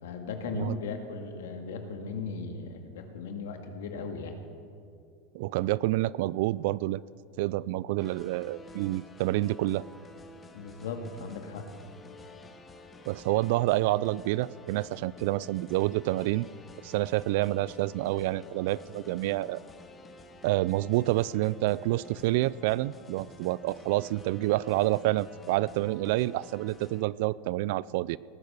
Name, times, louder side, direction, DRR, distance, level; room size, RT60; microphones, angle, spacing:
voice 1, 0.0-4.4 10.5-11.7, left 4 dB, 90° left, 5 dB, 1.9 m, -37 dB
voice 2, 5.3-7.0 7.4-9.8 13.1-16.5 16.8-19.6 20.4-28.2, right 17 dB, 65° right, 21 dB, 0.3 m, -28 dB
sound 1, 8.0-27.0, left 3 dB, 15° left, 1.1 m, -50 dB
18.5 x 10.5 x 6.8 m, 2.3 s
supercardioid pair, 145°, 0 cm